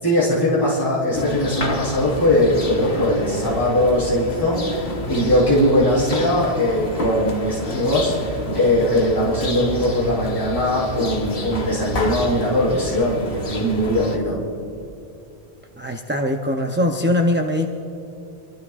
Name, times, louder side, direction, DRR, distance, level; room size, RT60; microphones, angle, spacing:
voice 1, 0.0-14.4, left 1 dB, 20° left, -8 dB, 3.6 m, -20 dB
sound 1, 1.1-14.2, left 1 dB, 60° left, 1.4 m, -29 dB
voice 2, 15.8-17.7, left 1 dB, 15° right, 2 dB, 0.5 m, -21 dB
24.5 x 14.5 x 2.5 m, 2.7 s
omnidirectional pair, 1.1 m